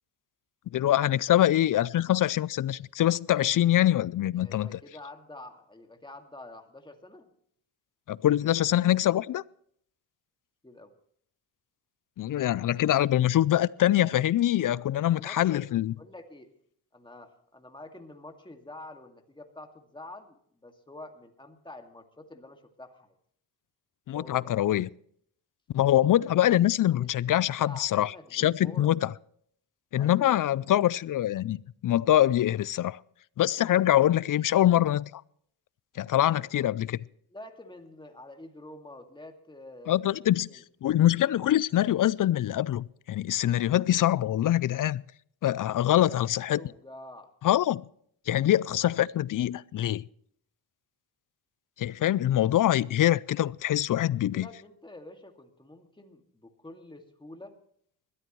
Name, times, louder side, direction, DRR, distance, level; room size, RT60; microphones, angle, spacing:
voice 1, 0.7-4.8 8.1-9.4 12.2-15.9 24.1-24.9 25.7-29.1 29.9-31.6 31.8-33.0 33.4-35.2 36.0-37.0 39.9-40.5 40.8-45.0 45.4-46.6 47.4-47.8 48.3-50.0 51.8-54.5, left 12 dB, 50° left, 0.4 m, -24 dB
voice 2, 4.3-7.3 10.6-10.9 14.9-15.7 16.0-16.5 16.9-23.2 24.1-24.7 26.4-28.9 30.0-30.4 36.4-36.5 37.3-40.6 45.8-47.3 54.1-57.5, left 2 dB, 10° left, 2.1 m, -47 dB
21.0 x 13.0 x 3.1 m
cardioid pair, 90°, 44 cm